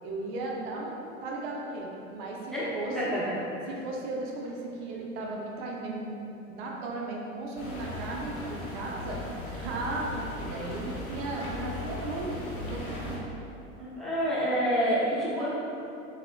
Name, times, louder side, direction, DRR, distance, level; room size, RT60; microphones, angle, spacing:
voice 1, 0.0-3.2 3.7-6.2 6.5-9.2 9.6-13.2, right 2 dB, 50° right, -2 dB, 0.5 m, -36 dB
voice 2, 2.5-3.2 13.8-15.5, equal, ahead, -10 dB, 0.6 m, -28 dB
sound 1, 7.6-13.2, left 2 dB, 85° left, 0.6 m, -38 dB
2.7 x 2.5 x 2.4 m, 2.8 s
figure-of-eight pair, 75°, 41 cm